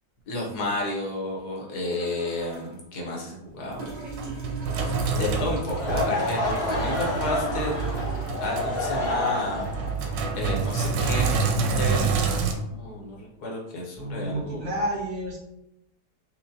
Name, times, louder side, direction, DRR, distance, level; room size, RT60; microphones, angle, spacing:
voice 1, 0.3-3.9 4.8-7.7 8.4-9.6 10.3-12.4 12.7-14.6, left 1 dB, 65° left, -2 dB, 1.3 m, -31 dB
sound 1, 1.9-2.8 3.8-10.8 12.2-12.3, right 2 dB, 70° right, 1.5 m, -41 dB
Sink (filling or washing), 3.7-12.5, right 4 dB, 90° right, 1.3 m, -28 dB
Laughter / Crowd, 5.7-11.6, left 2 dB, 45° left, 0.8 m, -30 dB
voice 2, 13.9-15.4, right 1 dB, 55° right, -5 dB, 1.4 m, -30 dB
4.4 x 2.6 x 2.6 m, 0.86 s
omnidirectional pair, 1.9 m